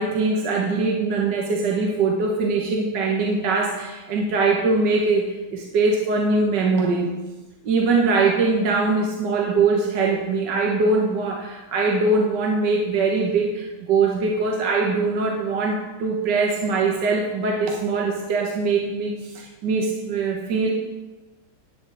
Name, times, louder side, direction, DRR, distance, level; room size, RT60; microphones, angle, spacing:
voice 1, 0.0-7.1 7.6-20.7, right 3 dB, 60° right, 0 dB, 1.6 m, -22 dB
10.5 x 8.6 x 3.9 m, 1.2 s
omnidirectional pair, 2.3 m